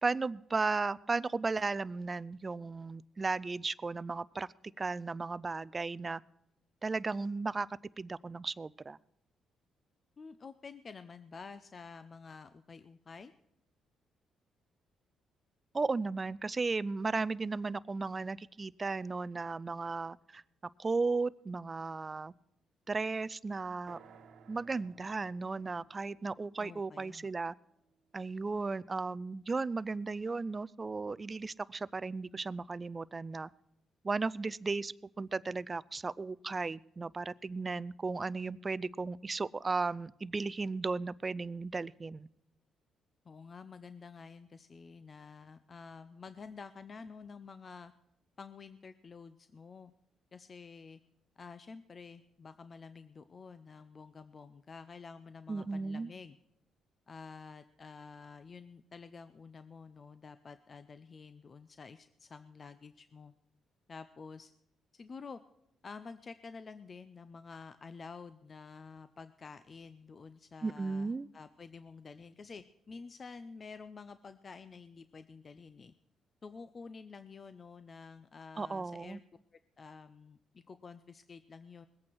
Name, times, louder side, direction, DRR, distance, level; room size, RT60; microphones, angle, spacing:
voice 1, 0.0-4.5 4.8-6.2 6.8-7.7 8.0-9.0 15.7-20.4 20.8-22.3 22.9-24.0 24.5-27.5 28.1-33.5 34.0-42.3 55.5-56.1 70.6-71.3 78.6-79.2, right 3 dB, 30° right, 20 dB, 0.4 m, -35 dB
voice 2, 10.2-13.3 26.6-27.3 43.2-47.9 48.4-49.9 50.3-51.0 51.4-56.4 57.1-63.3 63.9-64.5 64.9-65.4 65.8-75.9 76.4-79.2 79.8-81.9, left 5 dB, 40° left, 12 dB, 0.6 m, -50 dB
sound 1, 23.9-27.8, right 6 dB, 70° right, 1.3 m, -60 dB
21.0 x 8.6 x 4.6 m, 0.81 s
cardioid pair, 90°, 0 cm